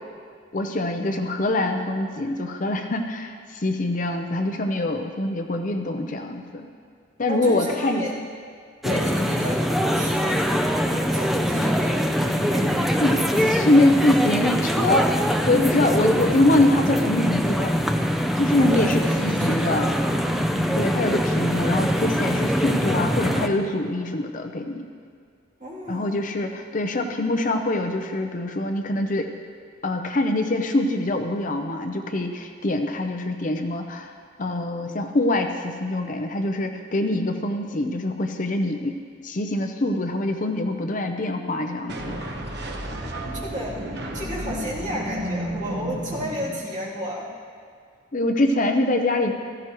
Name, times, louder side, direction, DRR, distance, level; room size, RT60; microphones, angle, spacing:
voice 1, 0.5-6.7 7.2-8.2 8.8-9.1 13.0-13.2 13.5-15.1 15.5-17.8 18.4-19.9 20.7-24.9 25.9-29.3 29.8-34.1 34.4-39.0 39.2-42.2 48.1-49.3, left 1 dB, 40° left, 5 dB, 0.6 m, -24 dB
voice 2, 7.3-8.1 8.8-12.1 12.5-13.9 15.8-16.0 18.6-20.0 25.6-26.2 43.2-47.3, equal, 40° right, -7 dB, 2.9 m, -33 dB
sound 1, 8.8-23.5, equal, ahead, 0.5 m, -23 dB
sound 2, 41.9-47.0, equal, 55° right, 1.2 m, -32 dB
16.5 x 14.5 x 3.0 m, 2.1 s
head